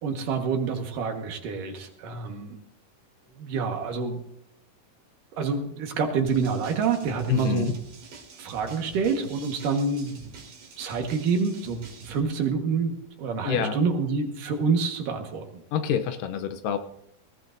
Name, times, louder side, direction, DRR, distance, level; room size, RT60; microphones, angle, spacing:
voice 1, 0.0-2.6 3.4-4.2 5.3-7.8 8.4-10.2 10.8-15.6, right 5 dB, 70° right, 4 dB, 2.9 m, -27 dB
sound 1, 6.3-12.2, right 4 dB, 90° right, 4.5 m, -45 dB
voice 2, 7.3-7.7 13.4-13.8 15.7-16.8, left 9 dB, 75° left, 9 dB, 2.2 m, -26 dB
20.0 x 17.5 x 2.6 m, 0.71 s
omnidirectional pair, 4.2 m